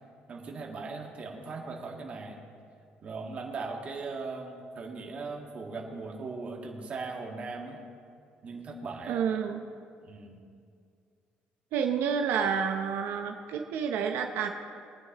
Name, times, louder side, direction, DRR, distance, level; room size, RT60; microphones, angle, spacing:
voice 1, 0.3-2.4 3.0-7.8 8.4-9.2 10.0-10.4, right 3 dB, 40° right, 0 dB, 1.8 m, -39 dB
voice 2, 9.1-9.6 11.7-14.5, right 7 dB, 90° right, 4 dB, 0.8 m, -29 dB
22.5 x 9.6 x 3.0 m, 2.3 s
cardioid pair, 145°, 4 cm